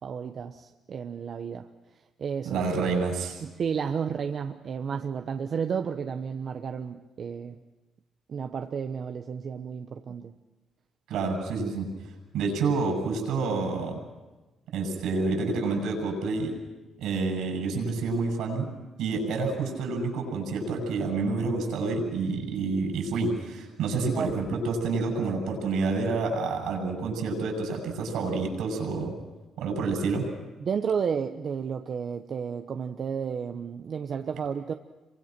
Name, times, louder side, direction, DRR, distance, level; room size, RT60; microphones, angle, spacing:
voice 1, 0.0-2.6 3.4-7.6 8.3-10.3 24.1-24.3 30.6-34.7, right 6 dB, 55° right, 6 dB, 1.1 m, -32 dB
voice 2, 2.4-3.4 11.1-11.9 12.3-14.0 14.7-16.5 17.0-18.7 19.0-29.1 29.6-30.2, right 4 dB, 85° right, 3 dB, 7.6 m, -28 dB
28.5 x 24.0 x 6.1 m, 1.2 s
cardioid pair, 90°, 0 cm